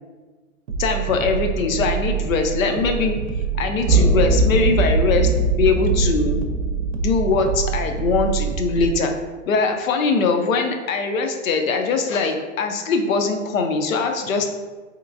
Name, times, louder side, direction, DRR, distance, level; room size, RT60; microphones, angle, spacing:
sound 1, 0.7-9.0, right 8 dB, 70° right, 0.6 m, -26 dB
voice 1, 0.8-3.2 3.6-5.3 5.6-6.4 7.0-9.1 9.5-14.5, left 4 dB, 85° left, 5 dB, 0.6 m, -21 dB
sound 2, 3.9-8.2, right 2 dB, 10° right, 0.3 m, -21 dB
3.2 x 2.9 x 2.5 m, 1.3 s
hypercardioid pair, 165°, 39 cm